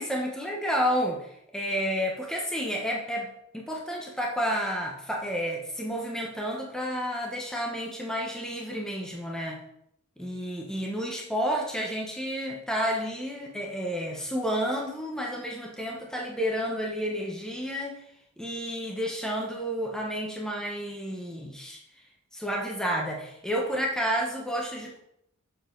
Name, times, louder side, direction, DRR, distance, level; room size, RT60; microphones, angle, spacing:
voice 1, 0.0-9.6 10.2-18.0 18.4-21.8 22.3-25.0, equal, 5° left, -1 dB, 1.0 m, -31 dB
7.4 x 7.0 x 3.9 m, 0.75 s
head